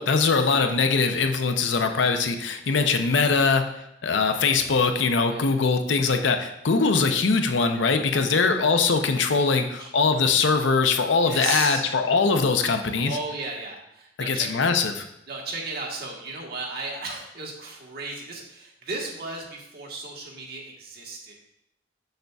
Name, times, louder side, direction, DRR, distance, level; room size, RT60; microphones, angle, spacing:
voice 1, 0.0-3.6 4.0-13.1 14.3-15.0, left 4 dB, 85° left, 7 dB, 0.6 m, -22 dB
voice 2, 8.1-8.5 9.6-9.9 11.2-11.8 12.9-14.5 15.3-21.3, right 3 dB, 60° right, -2 dB, 1.3 m, -35 dB
6.5 x 6.5 x 2.3 m, 0.81 s
head